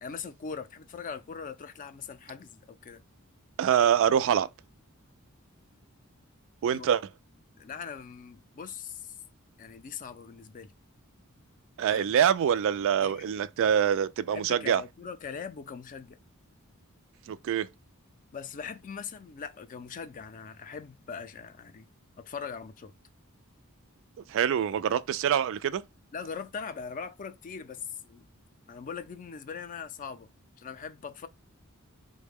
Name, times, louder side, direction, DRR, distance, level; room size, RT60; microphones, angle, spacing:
voice 1, 0.0-3.0 6.7-6.9 7.6-9.1 9.6-10.7 11.9-12.2 13.0-13.3 14.3-16.2 18.3-21.9 22.2-22.9 26.1-28.3 28.7-30.3 30.6-31.3, left 6 dB, 40° left, 0.4 m, -41 dB
voice 2, 3.6-4.5 6.6-7.0 11.8-14.8 17.3-17.7 24.3-25.8, right 8 dB, 65° right, 0.3 m, -25 dB
3.9 x 2.1 x 3.4 m
head